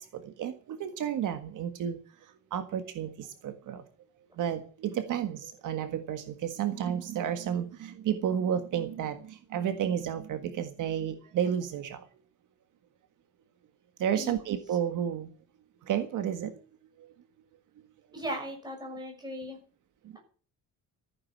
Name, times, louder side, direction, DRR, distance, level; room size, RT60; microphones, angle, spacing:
voice 1, 0.0-2.0 2.5-3.8 4.4-12.0 14.0-15.3 15.9-16.5, right 9 dB, 65° right, 8 dB, 1.7 m, -31 dB
voice 2, 18.1-19.6, equal, 10° right, 2 dB, 6.0 m, -37 dB
15.0 x 9.9 x 7.2 m, 0.41 s
cardioid pair, 180°, 33 cm